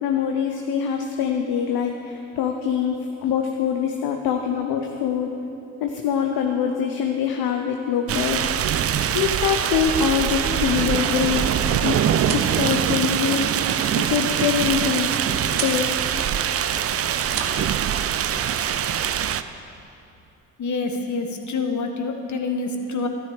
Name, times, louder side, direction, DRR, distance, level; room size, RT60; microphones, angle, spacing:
voice 1, 0.0-5.3 5.8-8.5 9.1-11.6 11.8-13.5 13.9-15.3 15.6-15.9, left 7 dB, 65° left, 3 dB, 0.9 m, -24 dB
sound 1, 8.1-19.4, right 9 dB, 35° right, 0.5 m, -23 dB
sound 2, 9.3-12.7 13.1-13.2 13.6-19.1, right 2 dB, 70° right, 2.3 m, -39 dB
sound 3, 12.3-12.9 13.3-13.4 14.1-14.2 14.5-14.6 14.8-15.1 15.4-16.0 16.9-17.0 17.4-17.6, right 7 dB, 55° right, 1.2 m, -33 dB
voice 2, 20.6-23.1, left 3 dB, 45° left, 4 dB, 1.5 m, -27 dB
12.5 x 10.5 x 5.1 m, 2.8 s
hypercardioid pair, 50°, 40 cm